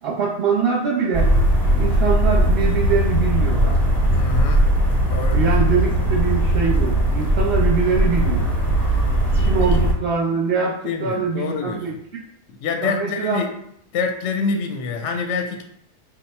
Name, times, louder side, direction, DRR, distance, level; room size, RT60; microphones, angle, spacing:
voice 1, 0.0-1.3 1.7-3.8 5.3-8.5 9.4-11.9 12.8-13.4, right 5 dB, 50° right, -6 dB, 0.8 m, -23 dB
sound 1, 1.1-9.9, right 1 dB, 20° right, 0.9 m, -18 dB
voice 2, 4.1-4.7 5.1-5.5 9.6-9.7 10.8-11.9 12.6-13.5 13.9-15.6, left 4 dB, 65° left, 4 dB, 0.7 m, -26 dB
3.6 x 2.1 x 4.3 m, 0.72 s
omnidirectional pair, 1.6 m